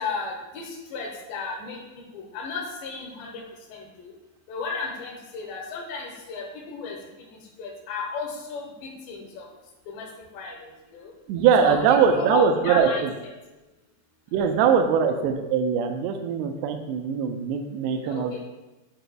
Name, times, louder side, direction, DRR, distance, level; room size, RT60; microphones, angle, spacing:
voice 1, 0.0-1.8 2.1-3.4 3.7-4.1 4.5-7.0 7.3-9.5 9.9-10.1 10.3-11.1 11.6-13.3 18.1-18.4, left 4 dB, 80° left, 0 dB, 3.0 m, -34 dB
voice 2, 11.3-13.1 14.3-18.4, right 7 dB, 85° right, 5 dB, 2.5 m, -22 dB
9.3 x 4.9 x 2.3 m, 1.1 s
omnidirectional pair, 4.9 m